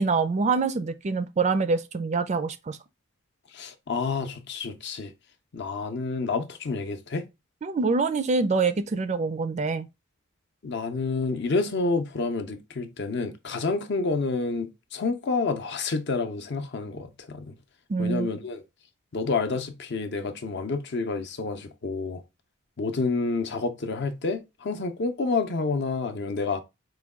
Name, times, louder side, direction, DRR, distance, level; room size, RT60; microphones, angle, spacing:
voice 1, 0.0-2.8 7.6-9.9 17.9-18.3, right 4 dB, 35° right, 0.3 m, -25 dB
voice 2, 3.5-5.1 5.5-7.3 10.6-17.5 18.0-18.6 19.1-22.2 22.8-26.6, left 3 dB, 55° left, 0.6 m, -29 dB
4.5 x 2.2 x 3.6 m
head